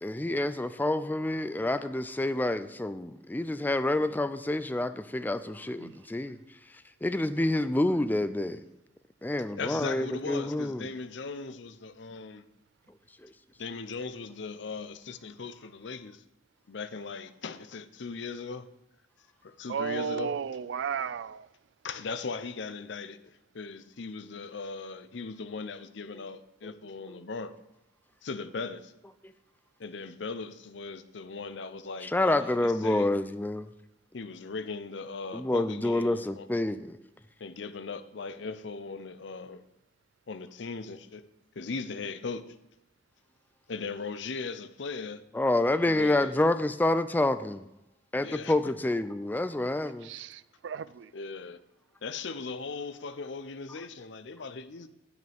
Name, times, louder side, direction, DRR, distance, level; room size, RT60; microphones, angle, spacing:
voice 1, 0.0-6.4 7.0-8.6 9.2-10.9 13.2-13.3 32.0-33.7 35.3-37.0 45.3-47.6 48.1-50.1, left 1 dB, 10° left, 0.3 m, -28 dB
voice 2, 9.6-12.4 13.6-16.2 16.7-18.7 19.4-20.3 21.8-27.5 28.2-28.9 29.8-33.1 34.1-36.5 37.4-39.6 40.3-41.2 41.6-42.4 43.7-45.2 45.9-46.3 48.2-48.5 51.1-51.6 52.0-54.9, left 4 dB, 65° left, 0.6 m, -38 dB
voice 3, 19.7-21.5 50.0-51.1, right 6 dB, 65° right, 0.4 m, -34 dB
9.4 x 9.3 x 3.5 m
head